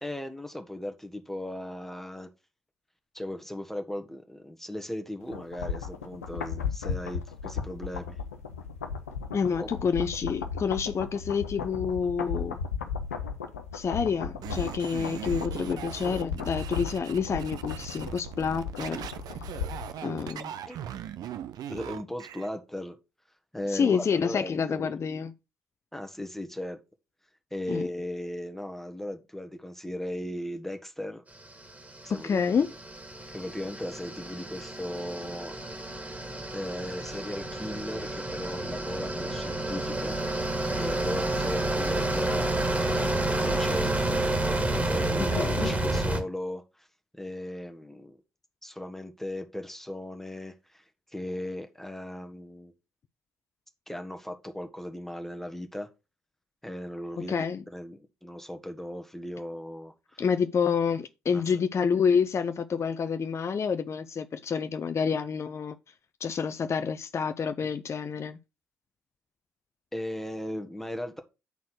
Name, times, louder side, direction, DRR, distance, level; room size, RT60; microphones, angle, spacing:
voice 1, 0.0-2.3 3.1-8.2 9.6-9.7 20.7-20.8 21.7-22.9 23.5-24.9 25.9-26.8 27.5-31.2 32.0-32.4 33.3-35.5 36.5-40.2 40.7-46.9 47.1-48.2 48.6-50.8 51.1-52.7 53.9-55.9 56.6-57.3 57.7-60.2 61.3-61.4 69.9-71.2, left 1 dB, 5° left, 1.3 m, -37 dB
sound 1, 5.3-20.0 20.3-20.4, left 6 dB, 80° left, 0.8 m, -35 dB
voice 2, 9.3-12.6 13.7-19.1 20.0-20.5 23.7-25.3 27.7-27.9 32.1-32.7 45.4-45.7 57.3-57.6 60.2-65.8 66.2-68.4, left 6 dB, 35° left, 0.6 m, -28 dB
sound 2, 14.4-22.5, right 10 dB, 55° right, 0.7 m, -40 dB
sound 3, 31.5-46.2, right 2 dB, 20° right, 2.1 m, -30 dB
8.1 x 4.2 x 6.1 m
figure-of-eight pair, 45°, 8 cm